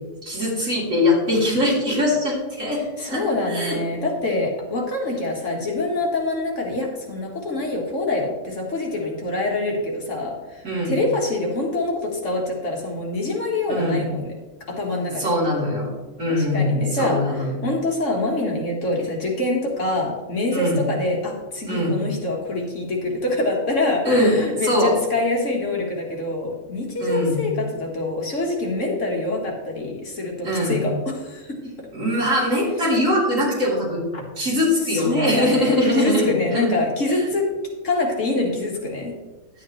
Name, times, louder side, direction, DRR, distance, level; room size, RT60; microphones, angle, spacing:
voice 1, 0.2-3.2 3.5-3.8 10.6-10.9 13.7-14.0 15.2-15.9 16.2-17.5 20.5-20.8 21.7-21.9 24.1-24.3 24.6-24.9 27.0-27.5 30.4-30.8 31.9-34.0 34.4-36.7 37.1-37.2, left 1 dB, 60° right, -6 dB, 4.1 m, -22 dB
voice 2, 3.0-14.3 14.7-15.3 16.3-31.7 34.1-34.2 34.9-37.5 37.8-39.2, left 2 dB, 60° left, -1 dB, 2.0 m, -25 dB
11.0 x 9.2 x 3.2 m, 1.2 s
omnidirectional pair, 1.5 m